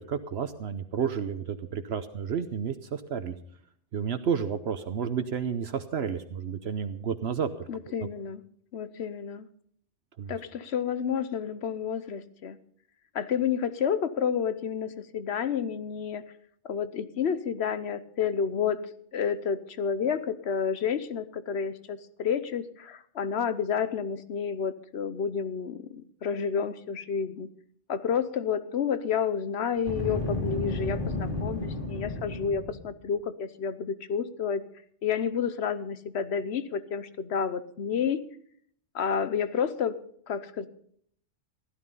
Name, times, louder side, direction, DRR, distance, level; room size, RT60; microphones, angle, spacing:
voice 1, 0.0-3.3 3.9-7.9 10.2-10.3, right 7 dB, 65° right, 10 dB, 1.0 m, -31 dB
voice 2, 7.7-8.4 8.7-9.4 10.3-12.6 13.1-16.2 16.6-27.5 27.9-34.6 35.0-38.2 38.9-40.0 40.3-40.7, left 7 dB, 65° left, 12 dB, 1.1 m, -30 dB
Boom, 29.8-32.9, left 2 dB, 50° left, 2.7 m, -32 dB
16.0 x 11.5 x 5.4 m, 0.64 s
omnidirectional pair, 1.2 m